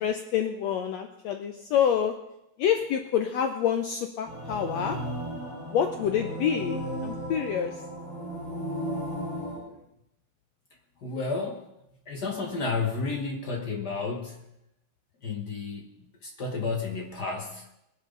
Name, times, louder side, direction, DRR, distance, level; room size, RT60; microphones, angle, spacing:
voice 1, 0.0-2.1 2.6-5.0 5.7-7.7, left 8 dB, 75° left, 5 dB, 1.7 m, -27 dB
sound 1, 4.3-9.6, equal, 35° left, 6.2 m, -35 dB
voice 2, 11.0-11.6 12.1-14.4 15.2-15.9 16.2-17.6, left 4 dB, 55° left, 2 dB, 1.1 m, -31 dB
20.5 x 11.0 x 3.9 m, 0.83 s
omnidirectional pair, 3.8 m